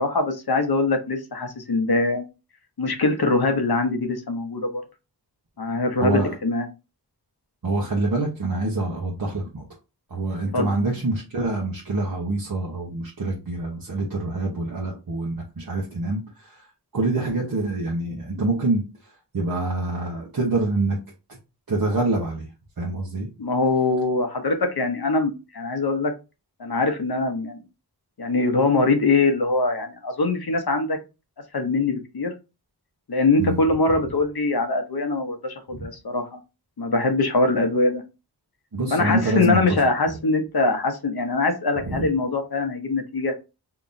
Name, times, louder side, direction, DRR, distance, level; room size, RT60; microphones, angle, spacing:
voice 1, 0.0-2.2 2.8-4.8 5.6-6.7 10.5-10.7 23.4-26.1 26.6-27.6 28.2-31.0 31.5-32.3 33.1-36.4 36.8-38.0 38.9-43.3, left 3 dB, 65° left, 6 dB, 0.8 m, -23 dB
voice 2, 6.0-6.3 7.6-9.6 10.1-16.6 16.9-18.8 19.3-21.0 21.7-22.5 22.8-23.3 33.4-33.6 35.7-35.9 38.7-39.6 41.8-42.1, right 2 dB, 60° right, -2 dB, 1.0 m, -25 dB
3.7 x 2.9 x 2.6 m, 0.28 s
wide cardioid pair, 55°, 40 cm